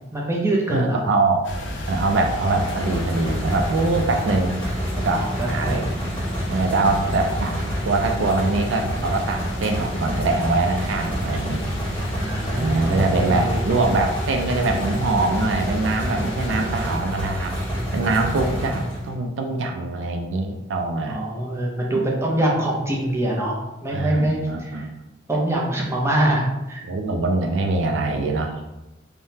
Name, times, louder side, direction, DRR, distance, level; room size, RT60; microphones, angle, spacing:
voice 1, 0.1-1.0 5.1-5.9 12.2-13.6 17.7-18.3 18.5-18.8 21.1-23.6 23.8-24.9 25.3-26.8, right 1 dB, 15° right, -3 dB, 0.5 m, -24 dB
voice 2, 0.7-1.4 1.9-4.6 4.9-5.9 6.5-7.6 7.8-11.6 12.6-17.6 17.9-21.2 21.9-22.0 23.9-24.9 26.8-28.6, right 3 dB, 80° right, 3 dB, 0.4 m, -23 dB
sound 1, 1.4-17.0, left 1 dB, 70° left, 0.5 m, -34 dB
sound 2, 2.2-19.1, equal, 10° left, 0.9 m, -28 dB
3.4 x 2.1 x 2.7 m, 0.98 s
head